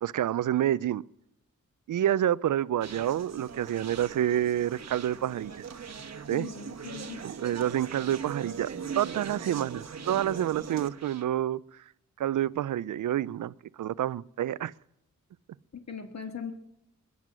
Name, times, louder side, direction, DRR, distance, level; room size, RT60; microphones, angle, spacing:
voice 1, 0.0-1.0 1.9-5.5 6.3-6.5 7.2-8.7 9.0-11.6 12.2-14.7, right 11 dB, 75° right, 0.5 m, -28 dB
Conversation, 2.8-11.2, right 6 dB, 60° right, 1.3 m, -40 dB
voice 2, 6.3-7.2 15.7-16.5, left 6 dB, 60° left, 1.9 m, -39 dB
22.0 x 9.6 x 6.2 m
cardioid pair, 65°, 31 cm